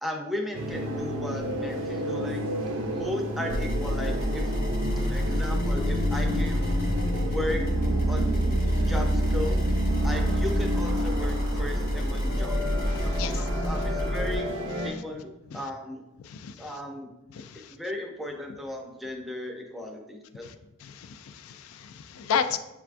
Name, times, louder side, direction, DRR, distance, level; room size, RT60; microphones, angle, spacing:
voice 1, 0.0-2.4 2.9-4.5 5.1-6.7 7.2-7.6 8.1-9.6 10.0-12.7 13.0-14.5 14.8-16.0 16.6-17.1 17.7-20.5, left 1 dB, ahead, 1 dB, 0.5 m, -36 dB
sound 1, 0.5-14.9, equal, 70° right, 0.6 m, -30 dB
sound 2, 3.5-14.4, equal, 45° left, 0.9 m, -28 dB
voice 2, 12.9-13.7 15.5-15.6 16.2-16.7 17.3-17.7 20.4-20.5 20.8-22.6, left 7 dB, 90° left, 10 dB, 0.3 m, -33 dB
6.6 x 2.3 x 2.5 m, 0.96 s
head